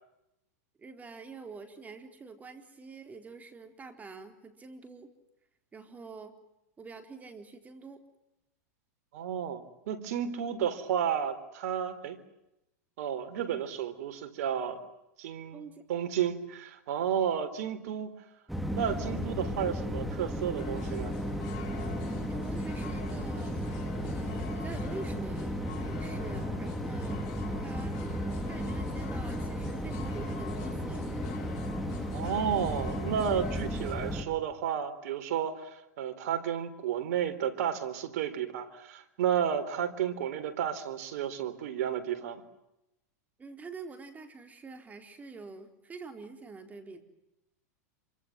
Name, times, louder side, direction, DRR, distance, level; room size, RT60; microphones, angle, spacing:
voice 1, 0.8-5.1 5.7-6.4 6.8-8.0 15.5-15.8 22.3-23.6 24.0-25.6 25.9-27.2 27.6-28.0 28.5-31.0 43.4-47.0, right 4 dB, 15° right, 6 dB, 4.2 m, -46 dB
voice 2, 9.1-12.2 13.0-14.8 15.2-15.6 15.9-18.1 18.7-21.1 32.1-42.4, right 8 dB, 70° right, 10 dB, 3.9 m, -32 dB
sound 1, 18.5-34.2, equal, ahead, 3.7 m, -34 dB
sound 2, 20.6-33.9, left 10 dB, 50° left, 6.7 m, -47 dB
27.5 x 25.0 x 7.6 m, 0.88 s
hypercardioid pair, 125°, 9 cm